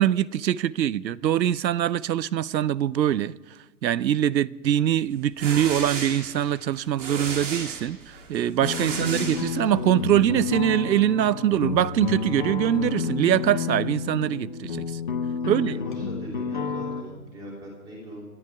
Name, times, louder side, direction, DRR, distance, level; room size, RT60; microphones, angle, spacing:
voice 1, 0.0-3.3 3.8-14.8 15.5-15.7, right 11 dB, 90° right, 0.7 m, -23 dB
sound 1, 5.1-10.0, right 5 dB, 45° right, 2.7 m, -35 dB
sound 2, 8.6-17.0, left 5 dB, 30° left, 0.9 m, -30 dB
voice 2, 15.4-18.2, equal, 10° right, 3.0 m, -41 dB
27.5 x 11.0 x 4.7 m
hypercardioid pair, 175°, 50 cm